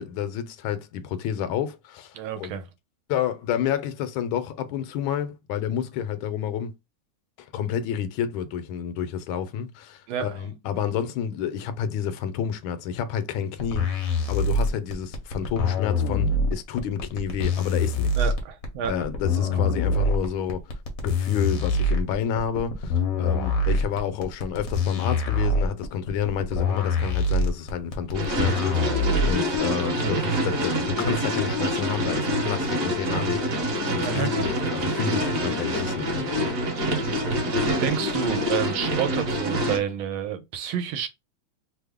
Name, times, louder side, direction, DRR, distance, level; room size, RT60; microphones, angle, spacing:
voice 1, 0.0-2.5 3.1-6.7 7.4-18.1 18.9-20.7 21.0-37.1, left 8 dB, 80° left, 1.4 m, -30 dB
voice 2, 2.1-2.6 10.1-10.4 18.2-18.9 19.4-19.7 34.0-34.3 37.2-41.1, right 9 dB, 90° right, 1.5 m, -29 dB
sound 1, 13.6-29.6, left 2 dB, 60° left, 0.9 m, -24 dB
sound 2, 28.1-39.8, equal, 50° right, 1.2 m, -26 dB
3.4 x 2.1 x 3.4 m
omnidirectional pair, 2.2 m